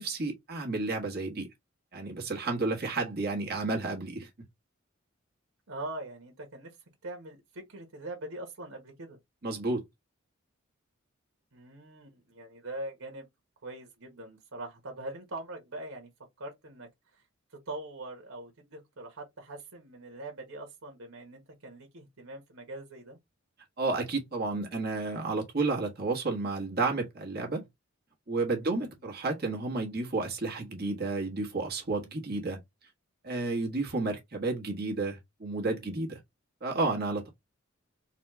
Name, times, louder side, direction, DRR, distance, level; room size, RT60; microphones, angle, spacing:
voice 1, 0.0-1.5 1.9-4.3 9.4-9.8 23.8-27.6 28.3-32.6 33.2-36.2 36.6-37.3, right 3 dB, 50° right, 1.4 m, -31 dB
voice 2, 5.7-6.7 7.0-9.2 11.5-13.3 13.6-16.1 16.4-16.9 17.7-23.2 28.6-29.0, right 2 dB, 90° right, 1.2 m, -42 dB
4.1 x 2.4 x 3.0 m
head